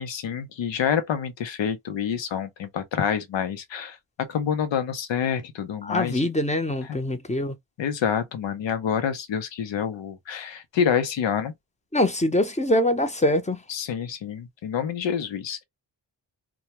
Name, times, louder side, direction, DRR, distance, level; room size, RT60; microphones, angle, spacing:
voice 1, 0.0-6.2 7.8-11.5 13.7-15.6, left 8 dB, 90° left, 0.7 m, -27 dB
voice 2, 5.8-7.6 11.9-13.6, left 1 dB, 15° left, 0.7 m, -23 dB
2.2 x 2.2 x 2.9 m
cardioid pair, 40°, 43 cm